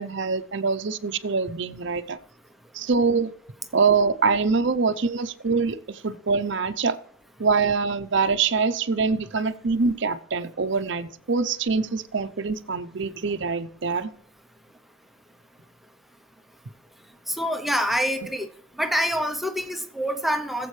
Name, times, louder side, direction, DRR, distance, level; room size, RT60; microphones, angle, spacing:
voice 1, 0.0-2.2 2.7-3.3 3.7-6.9 7.4-14.1, right 4 dB, 60° right, 12 dB, 0.6 m, -24 dB
voice 2, 17.3-18.5 18.8-20.7, equal, ahead, 7 dB, 0.7 m, -26 dB
20.5 x 7.6 x 3.2 m, 0.68 s
head